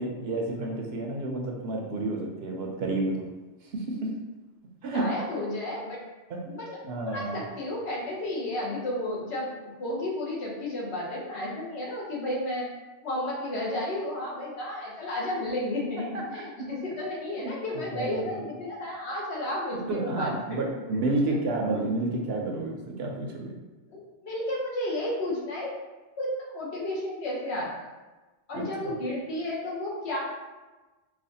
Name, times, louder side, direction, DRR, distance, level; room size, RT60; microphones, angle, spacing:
voice 1, 0.0-3.3 3.6-3.9 4.8-5.1 6.3-6.4 6.8-7.4 16.1-16.4 17.4-18.4 19.7-23.5 28.5-29.0, right 2 dB, 70° right, 0 dB, 0.8 m, -30 dB
voice 2, 4.9-6.0 6.4-6.8 7.0-9.5 9.8-12.6 13.0-16.1 16.3-20.6 21.0-21.4 23.9-25.7 26.2-27.7 28.5-30.2, left 1 dB, 65° left, -4 dB, 1.2 m, -32 dB
4.9 x 2.3 x 2.7 m, 1.2 s
omnidirectional pair, 1.2 m